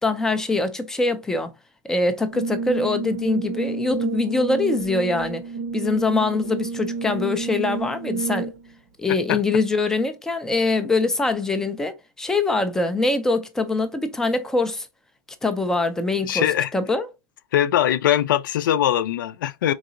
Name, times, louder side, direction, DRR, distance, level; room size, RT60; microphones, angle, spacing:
voice 1, 0.0-1.5 1.8-5.4 5.7-8.5 9.0-14.9 15.4-16.5 16.7-17.1, left 3 dB, 5° left, 0.4 m, -23 dB
Brass instrument, 2.3-8.7, right 4 dB, 45° right, 0.6 m, -30 dB
voice 2, 16.2-16.7 17.5-19.7, left 11 dB, 80° left, 0.6 m, -21 dB
4.7 x 3.9 x 2.6 m
supercardioid pair, 175°, 11 cm